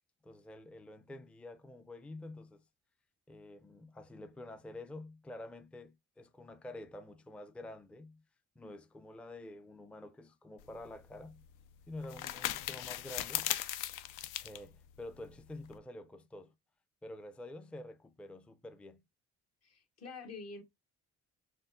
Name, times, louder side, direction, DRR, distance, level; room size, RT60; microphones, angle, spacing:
voice 1, 0.2-2.6 3.3-8.2 8.6-11.4 11.9-13.5 14.4-16.5 17.0-19.0, left 1 dB, 5° left, 0.4 m, -48 dB
sound 1, 10.6-15.8, left 12 dB, 85° left, 0.5 m, -39 dB
voice 2, 19.6-20.6, left 4 dB, 55° left, 1.0 m, -47 dB
4.3 x 3.2 x 2.6 m
cardioid pair, 90°, 30 cm